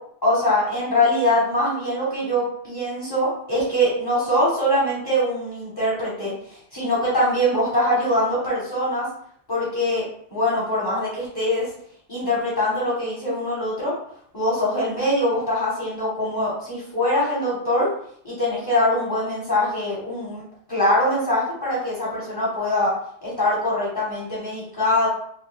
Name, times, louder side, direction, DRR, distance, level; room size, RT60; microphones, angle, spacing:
voice 1, 0.2-6.3 6.7-9.1 9.5-10.0 10.3-11.7 12.1-13.9 14.3-17.9 18.2-20.4 20.7-22.9 23.2-25.1, left 1 dB, 20° left, -8 dB, 0.9 m, -23 dB
2.6 x 2.2 x 3.3 m, 0.64 s
omnidirectional pair, 1.1 m